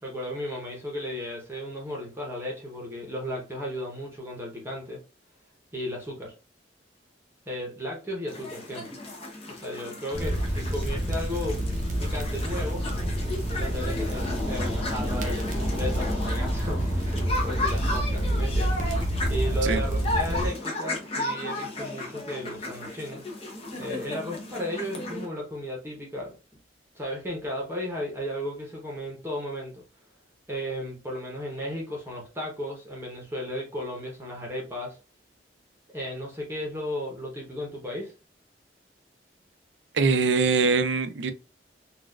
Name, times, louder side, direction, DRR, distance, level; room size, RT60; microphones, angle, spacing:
voice 1, 0.0-5.0 5.7-6.3 7.5-9.0 9.5-11.6 12.0-12.9 13.6-18.8 19.3-23.2 23.8-26.4 26.9-29.8 30.5-35.0 35.9-38.1, equal, 15° right, 0.9 m, -35 dB
sound 1, 8.3-25.3, left 2 dB, 35° left, 0.7 m, -34 dB
sound 2, 10.1-20.5, right 1 dB, 45° right, 0.6 m, -28 dB
voice 2, 39.9-41.3, right 4 dB, 85° right, 0.5 m, -23 dB
4.0 x 2.4 x 2.3 m
head